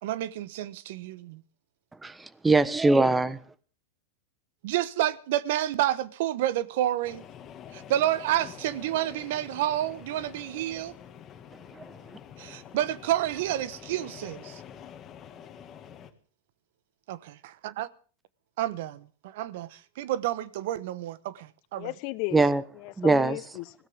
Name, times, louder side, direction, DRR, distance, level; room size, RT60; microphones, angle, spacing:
voice 1, 0.0-1.4 4.6-7.2 7.7-10.9 12.4-14.6 17.1-17.9 18.6-21.9, right 13 dB, 65° right, 1.0 m, -29 dB
voice 2, 2.0-3.4 22.3-22.6 23.0-23.4, right 3 dB, 10° right, 1.2 m, -22 dB
sound 1, 7.0-16.1, left 8 dB, 30° left, 2.0 m, -47 dB
voice 3, 21.7-23.7, left 20 dB, 55° left, 1.1 m, -35 dB
21.0 x 16.0 x 3.6 m
hypercardioid pair, 115°, 0 cm